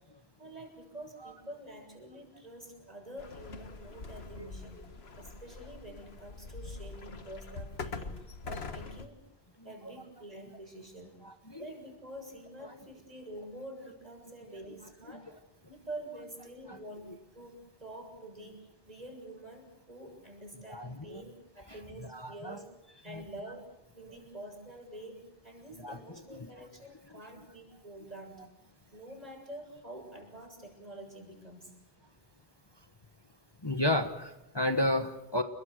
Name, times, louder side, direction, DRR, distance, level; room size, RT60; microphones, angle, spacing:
voice 1, 0.4-4.9 5.2-9.2 9.6-11.2 11.6-15.3 15.7-17.1 17.3-22.7 23.0-28.4 28.9-31.7, right 1 dB, 40° right, 2 dB, 7.3 m, -47 dB
sound 1, 3.2-9.1, left 4 dB, 75° left, 1.7 m, -44 dB
voice 2, 11.2-11.6 16.7-16.8 20.7-21.2 22.1-22.6 23.1-23.2 25.8-26.0 26.3-26.5 33.6-35.4, left 1 dB, 25° left, 7 dB, 1.3 m, -32 dB
29.5 x 22.5 x 6.6 m, 0.90 s
omnidirectional pair, 1.1 m